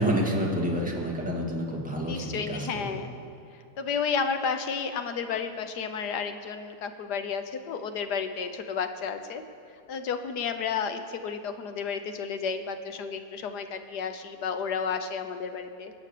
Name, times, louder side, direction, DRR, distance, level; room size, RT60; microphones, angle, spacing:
voice 1, 0.0-2.9, equal, 5° right, -3 dB, 2.0 m, -28 dB
voice 2, 2.0-3.1 3.8-9.4 9.9-15.9, left 6 dB, 80° left, 8 dB, 1.5 m, -32 dB
21.5 x 8.3 x 6.7 m, 2.4 s
omnidirectional pair, 1.8 m